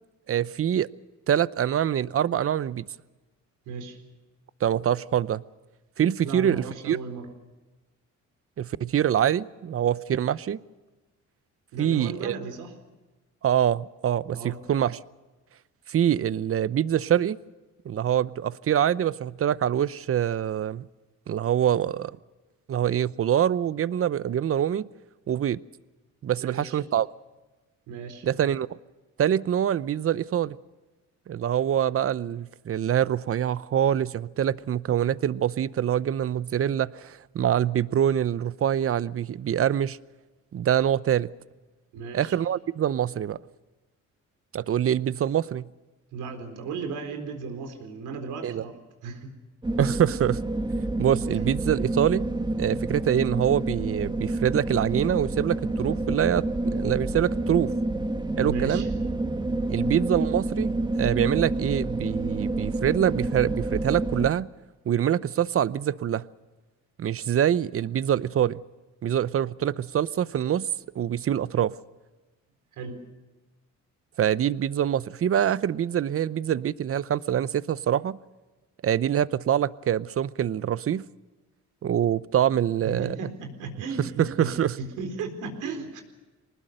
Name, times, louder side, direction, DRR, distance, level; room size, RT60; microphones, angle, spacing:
voice 1, 0.3-0.9 1.3-2.8 4.6-5.4 6.0-7.0 8.6-10.6 11.8-12.3 13.4-15.0 15.9-17.4 17.8-20.9 21.3-22.1 22.7-24.9 25.3-25.6 26.2-27.1 28.2-28.7 29.2-30.6 31.3-40.0 40.5-41.3 42.1-43.4 44.5-45.7 48.4-48.6 49.8-50.4 51.0-52.2 52.6-56.4 56.7-57.7 58.4-58.9 59.7-60.7 60.9-64.5 64.9-66.2 67.0-68.6 69.0-70.7 71.0-71.7 74.2-78.2 78.8-81.0 81.8-83.1 84.0-84.7, right 10 dB, 50° right, 0.8 m, -25 dB
voice 2, 3.7-4.0 6.2-7.3 11.7-12.7 14.3-14.6 26.4-26.8 27.9-28.3 41.9-42.4 46.1-49.3 58.4-58.9 72.7-73.0 82.8-86.0, right 4 dB, 90° right, 4.1 m, -36 dB
sound 1, 49.6-64.3, right 2 dB, 15° right, 1.6 m, -28 dB
24.0 x 20.0 x 6.6 m
cardioid pair, 90°, 30 cm